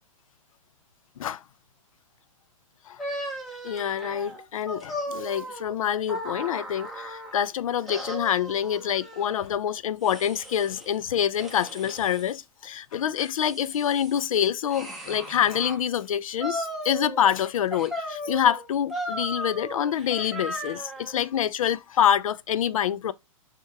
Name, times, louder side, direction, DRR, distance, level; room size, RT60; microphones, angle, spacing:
sound 1, 3.0-7.5 7.9-9.4 10.0-10.9 11.3-12.3 12.9-15.8 16.4-17.4 17.7-21.2, equal, ahead, 0.8 m, -36 dB
voice 1, 3.6-23.1, left 9 dB, 75° left, 0.5 m, -26 dB
6.3 x 2.9 x 2.3 m
hypercardioid pair, 155°, 18 cm